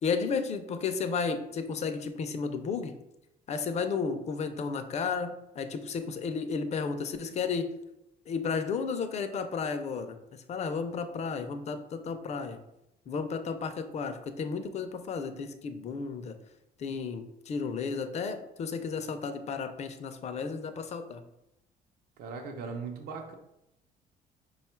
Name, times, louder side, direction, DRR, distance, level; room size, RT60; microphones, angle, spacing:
voice 1, 0.0-2.9 3.5-7.7 8.3-10.2 10.5-12.6 13.1-16.4 16.8-21.2, left 5 dB, 40° left, 8 dB, 0.5 m, -33 dB
voice 2, 22.2-23.3, right 5 dB, 65° right, 4 dB, 0.6 m, -38 dB
5.0 x 2.3 x 4.3 m, 0.88 s
cardioid pair, 110°, 17 cm